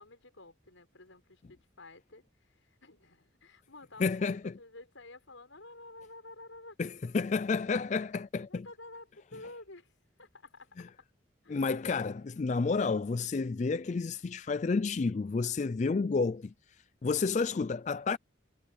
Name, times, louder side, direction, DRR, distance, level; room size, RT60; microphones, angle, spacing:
voice 1, 0.0-6.8 8.5-9.9 10.2-11.1 11.4-12.4, left 2 dB, 85° left, 6.5 m, -51 dB
voice 2, 4.0-4.5 6.8-8.7 11.5-16.5 17.0-18.2, left 4 dB, 35° left, 0.3 m, -30 dB
head